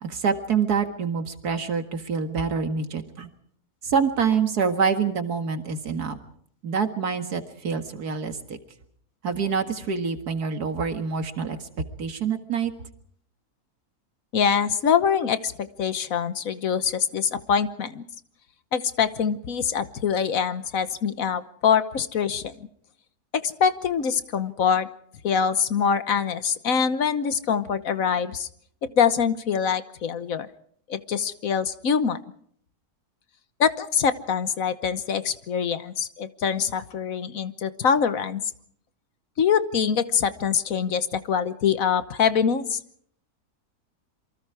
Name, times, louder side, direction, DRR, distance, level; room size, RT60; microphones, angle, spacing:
voice 1, 0.0-3.3 3.8-6.2 6.6-8.4 9.2-11.6 12.0-12.7, right 6 dB, 90° right, 7 dB, 2.3 m, -26 dB
voice 2, 14.3-18.0 18.7-22.5 23.3-24.9 25.2-28.5 28.8-30.5 30.9-32.2 33.6-38.4 39.4-42.8, left 7 dB, 65° left, 12 dB, 1.4 m, -24 dB
27.5 x 24.0 x 4.8 m, 0.63 s
omnidirectional pair, 1.6 m